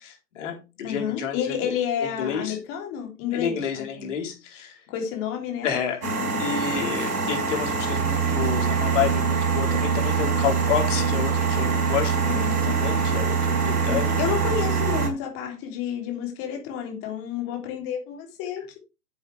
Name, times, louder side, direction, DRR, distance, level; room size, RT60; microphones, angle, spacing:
voice 1, 0.1-1.7 2.0-2.6 3.3-4.8 5.6-6.0 6.4-14.2, left 8 dB, 50° left, 2 dB, 3.7 m, -30 dB
voice 2, 0.8-4.1 4.9-5.7 12.3-12.8 13.8-18.8, left 8 dB, 30° left, 2 dB, 3.2 m, -30 dB
sound 1, 6.0-15.1, right 5 dB, 70° right, 3.9 m, -24 dB
10.0 x 7.9 x 3.4 m, 0.29 s
figure-of-eight pair, 125°, 47 cm